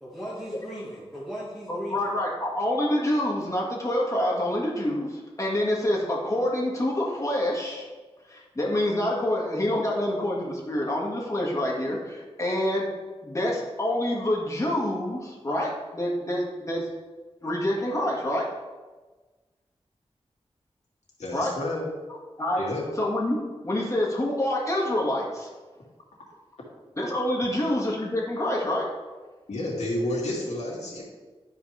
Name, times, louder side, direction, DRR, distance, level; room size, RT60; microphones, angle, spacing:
voice 1, 0.0-2.1, equal, ahead, -8 dB, 1.7 m, -37 dB
voice 2, 1.7-7.9 8.3-12.9 13.2-16.9 17.4-18.5 21.3-21.6 22.4-22.7 23.0-23.4 23.6-25.5 27.0-28.9, left 1 dB, 30° left, -3 dB, 2.1 m, -27 dB
voice 3, 21.2-21.9 22.6-22.9 27.4-27.5 29.5-31.0, left 1 dB, 80° left, -4 dB, 2.5 m, -30 dB
12.0 x 4.8 x 3.4 m, 1.3 s
wide cardioid pair, 80°, 11 cm